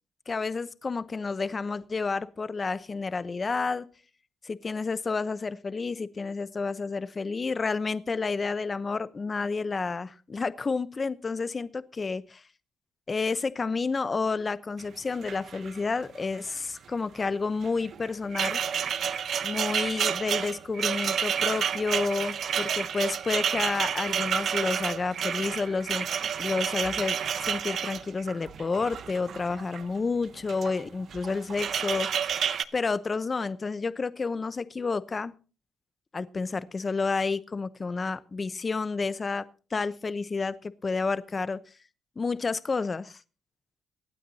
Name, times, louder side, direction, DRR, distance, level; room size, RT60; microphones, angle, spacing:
voice 1, 0.3-3.9 4.4-12.4 13.1-18.6 19.4-26.1 26.4-32.3 32.7-35.3 36.1-39.4 39.7-41.6 42.2-43.2, left 4 dB, 30° left, 14 dB, 0.8 m, -30 dB
sound 1, 14.8-14.9 15.1-16.0 16.2-16.5 17.6-29.8 30.4-30.8 31.1-32.6, right 8 dB, 60° right, 0.7 m, -30 dB
24.0 x 9.2 x 2.8 m, 0.35 s
cardioid pair, 90°, 0 cm